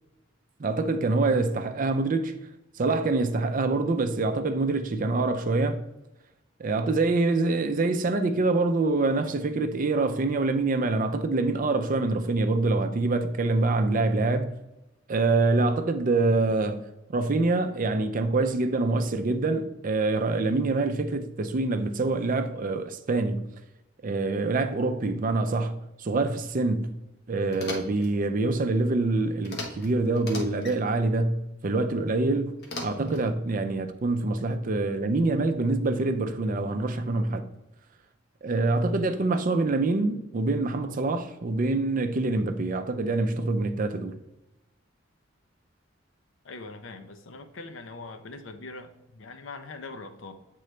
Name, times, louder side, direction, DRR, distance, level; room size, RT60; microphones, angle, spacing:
voice 1, 0.6-2.4 2.8-5.8 6.6-14.5 15.1-16.8 17.1-23.4 24.0-26.9 27.3-31.4 31.6-32.5 32.8-37.4 38.4-44.1, right 3 dB, 45° right, 0.5 m, -25 dB
sound 1, 27.5-28.1 29.4-29.9 30.1-30.8 32.6-33.3, left 2 dB, 55° left, 1.1 m, -37 dB
voice 2, 46.4-50.3, left 3 dB, 70° left, 0.6 m, -42 dB
7.8 x 3.8 x 3.2 m
head